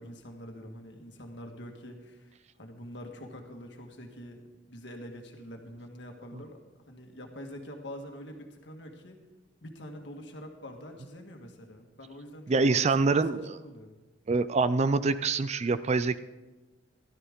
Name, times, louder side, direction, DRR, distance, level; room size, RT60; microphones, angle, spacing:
voice 1, 0.0-2.3 2.6-4.4 4.7-6.6 6.9-9.2 9.6-12.8 13.1-13.2 13.5-14.0, equal, 65° left, 3 dB, 1.7 m, -45 dB
voice 2, 12.5-13.6 14.3-16.2, right 3 dB, 35° right, 14 dB, 0.4 m, -25 dB
14.0 x 12.5 x 3.7 m, 1.2 s
head